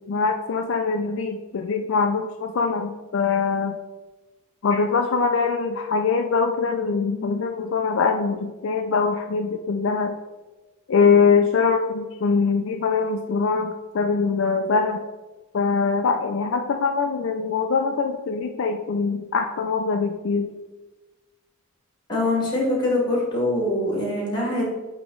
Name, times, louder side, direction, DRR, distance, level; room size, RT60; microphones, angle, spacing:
voice 1, 0.1-3.8 4.6-10.1 10.9-15.0 15.5-20.5, left 5 dB, 60° left, 4 dB, 0.4 m, -23 dB
voice 2, 22.1-24.6, left 1 dB, 20° left, -3 dB, 1.9 m, -23 dB
8.4 x 3.0 x 3.9 m, 1.2 s
head